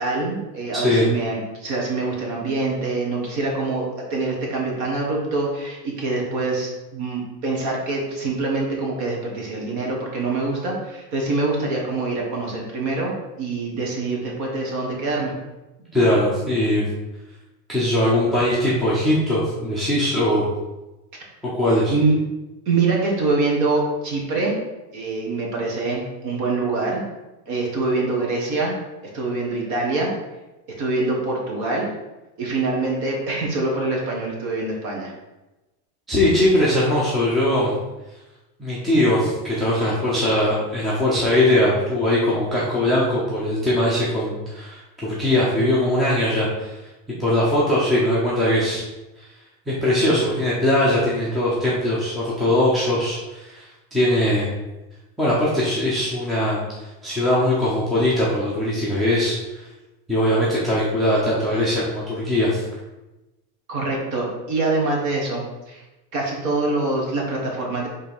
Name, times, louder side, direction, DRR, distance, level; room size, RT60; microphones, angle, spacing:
voice 1, 0.0-15.3 21.9-22.2 22.6-24.5 24.9-27.0 27.5-28.7 29.1-30.1 30.8-31.9 32.4-35.1 63.7-65.8 66.1-67.9, right 3 dB, 40° right, -1 dB, 1.7 m, -24 dB
voice 2, 0.7-1.1 15.9-16.9 17.7-20.5 21.5-21.9 36.1-37.8 38.6-46.7 47.2-48.8 49.7-53.7 53.9-54.5 55.2-56.6 57.0-59.7 60.1-62.6, left 1 dB, ahead, -8 dB, 0.7 m, -20 dB
5.1 x 3.6 x 5.4 m, 1.0 s
supercardioid pair, 165°, 46 cm